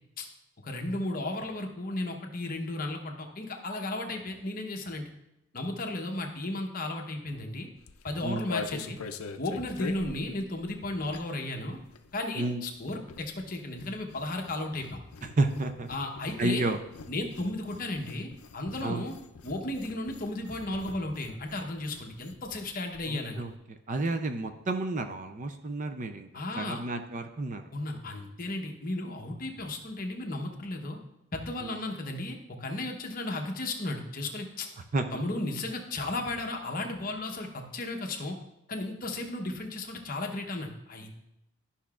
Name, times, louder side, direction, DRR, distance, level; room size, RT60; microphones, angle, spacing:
voice 1, 0.6-5.1 5.5-7.7 8.0-9.0 9.4-11.8 12.1-15.0 15.9-16.6 17.1-19.1 19.4-23.4 26.3-26.8 27.7-31.0 31.3-34.7 35.1-38.4 38.7-41.2, left 2 dB, 40° left, 2 dB, 0.9 m, -34 dB
sound 1, 7.8-11.5 11.7-22.7 22.9-23.0 23.3-23.6, left 4 dB, 75° left, 0.5 m, -44 dB
voice 2, 15.4-15.9 16.4-16.8 18.8-19.0 23.1-23.5 23.9-26.3 26.6-27.7 31.6-31.8 34.9-35.2, right 2 dB, 35° right, 7 dB, 0.4 m, -31 dB
12.0 x 5.6 x 2.4 m, 0.89 s
head